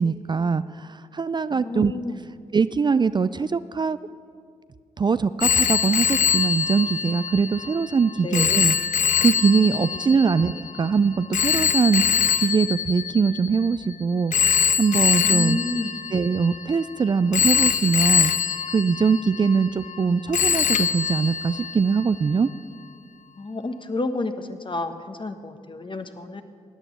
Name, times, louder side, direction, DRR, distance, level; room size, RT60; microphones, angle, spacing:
voice 1, 0.0-1.9 2.5-4.0 5.0-12.0 12.4-15.6 16.1-22.5, right 5 dB, 30° right, 14 dB, 0.4 m, -22 dB
voice 2, 1.5-2.2 8.2-8.6 10.2-10.3 15.2-16.0 23.4-26.4, left 2 dB, 35° left, 8 dB, 1.3 m, -30 dB
Telephone, 5.4-13.8 14.3-16.8 17.3-20.0 20.3-22.1, left 8 dB, 60° left, 0.6 m, -24 dB
12.5 x 9.0 x 8.6 m, 2.2 s
supercardioid pair, 45°, 14 cm